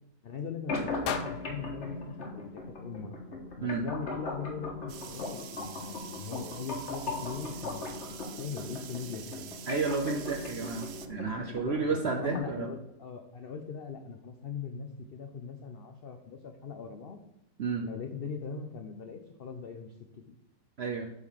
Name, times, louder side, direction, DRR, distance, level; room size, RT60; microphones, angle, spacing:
voice 1, 0.2-3.2 3.6-9.5 11.4-17.2 17.8-19.9, left 6 dB, 60° left, 6 dB, 0.6 m, -41 dB
sound 1, 0.7-12.7, left 2 dB, 45° left, 1.7 m, -39 dB
sound 2, 1.0-3.2, left 9 dB, 80° left, 1.2 m, -41 dB
sound 3, 4.9-11.1, right 9 dB, 85° right, 0.5 m, -47 dB
voice 2, 9.7-12.7 17.6-17.9 20.8-21.1, right 4 dB, 55° right, 4 dB, 0.7 m, -31 dB
8.1 x 3.8 x 6.3 m, 0.84 s
omnidirectional pair, 1.7 m